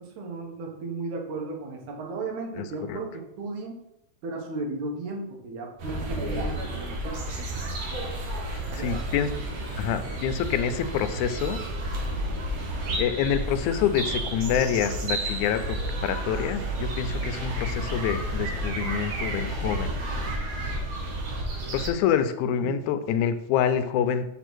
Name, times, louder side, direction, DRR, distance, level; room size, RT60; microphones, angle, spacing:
voice 1, 0.0-3.8 4.2-7.3 8.7-9.0 22.6-22.7, right 3 dB, 80° right, 0 dB, 2.6 m, -35 dB
voice 2, 2.6-3.0 8.5-9.3 9.8-11.6 13.0-15.8 16.0-19.9 20.5-20.6 21.7-24.3, left 8 dB, 90° left, 10 dB, 2.0 m, -27 dB
sound 1, 5.8-21.9, right 1 dB, 65° right, 2.2 m, -31 dB
6.7 x 3.6 x 6.1 m, 0.82 s
omnidirectional pair, 3.4 m